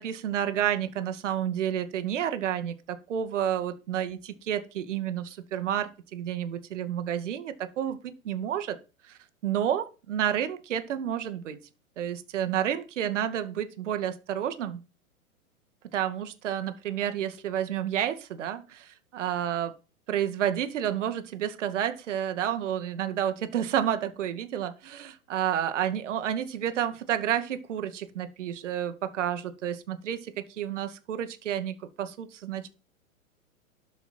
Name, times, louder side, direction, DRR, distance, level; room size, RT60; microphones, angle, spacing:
voice 1, 0.0-8.8 9.1-11.6 12.0-14.8 15.9-19.7 20.1-32.7, right 10 dB, 55° right, 10 dB, 2.2 m, -30 dB
12.5 x 7.9 x 4.6 m, 0.32 s
figure-of-eight pair, 110°, 43 cm